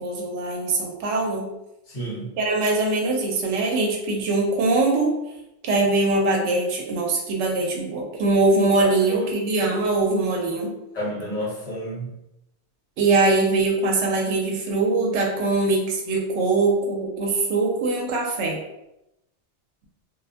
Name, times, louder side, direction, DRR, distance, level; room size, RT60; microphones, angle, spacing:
voice 1, 0.0-1.5 2.4-5.1 5.6-10.7 13.0-18.6, right 3 dB, 80° right, 0 dB, 0.9 m, -22 dB
voice 2, 1.9-2.3 8.8-9.3 10.9-12.1, equal, 40° left, -6 dB, 1.0 m, -30 dB
2.3 x 2.0 x 2.6 m, 0.88 s
omnidirectional pair, 1.2 m